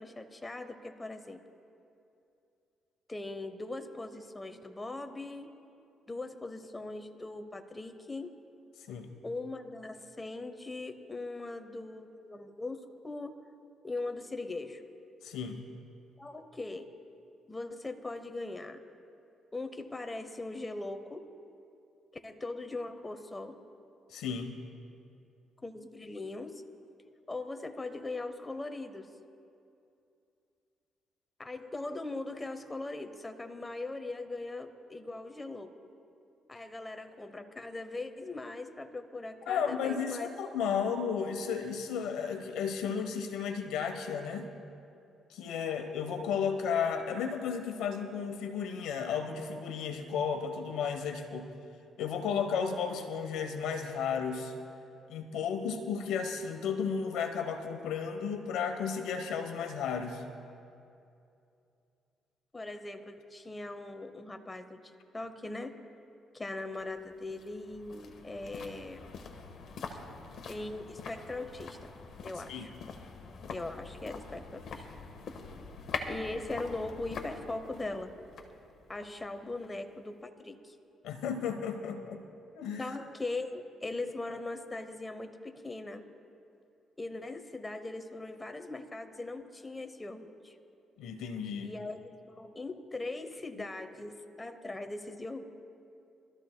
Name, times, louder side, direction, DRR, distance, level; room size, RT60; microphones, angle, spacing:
voice 1, 0.0-1.4 3.1-5.5 6.1-8.3 9.2-13.3 13.8-14.8 16.2-17.0 17.5-18.8 19.5-21.2 22.2-23.6 25.6-26.6 27.3-29.1 31.4-35.7 36.5-40.3 62.5-64.8 65.1-65.7 66.3-69.1 70.5-71.9 72.2-72.7 73.5-74.8 76.1-78.1 78.9-80.8 82.8-86.1 87.0-90.6 91.6-95.4, left 2 dB, 20° left, 8 dB, 0.8 m, -40 dB
voice 2, 15.2-15.6 24.1-24.6 39.5-44.5 45.3-51.5 52.0-54.5 55.1-60.2 72.5-72.7 81.0-82.2 82.5-82.9 91.0-91.7 93.6-93.7, left 6 dB, 90° left, 6 dB, 1.0 m, -33 dB
sound 1, 66.7-79.9 80.2-80.3, left 4 dB, 65° left, 1.2 m, -44 dB
24.0 x 13.5 x 2.2 m, 2.6 s
cardioid pair, 90°, 0 cm